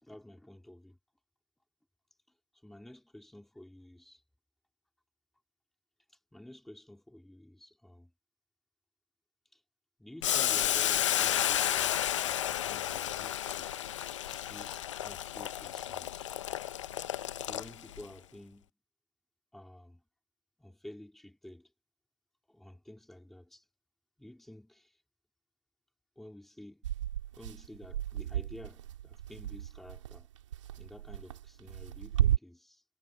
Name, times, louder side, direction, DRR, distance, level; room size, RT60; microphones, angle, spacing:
voice 1, 0.0-1.0 2.6-4.2 6.3-8.1 9.5-9.6 10.0-13.7 14.2-16.3 17.4-18.7 19.5-20.0 20.6-21.7 22.5-23.6 24.2-25.0 26.2-26.9 27.4-30.3 30.8-32.8, left 1 dB, ahead, 3.9 m, -51 dB
Boiling, 10.2-18.0, left 11 dB, 80° left, 0.9 m, -32 dB
sound 1, 26.8-32.4, right 11 dB, 80° right, 2.9 m, -33 dB
supercardioid pair, 170°, 16 cm